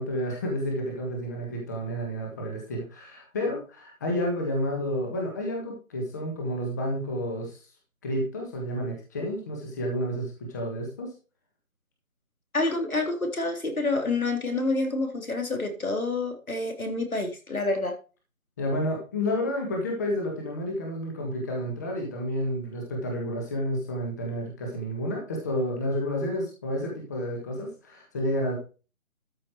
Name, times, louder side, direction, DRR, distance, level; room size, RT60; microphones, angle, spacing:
voice 1, 0.0-7.6 8.0-11.1 18.6-28.5, equal, 15° left, 0 dB, 1.6 m, -30 dB
voice 2, 12.5-18.0, left 2 dB, 85° left, 4 dB, 3.7 m, -28 dB
13.0 x 5.8 x 4.6 m, 0.34 s
figure-of-eight pair, 165°, 41 cm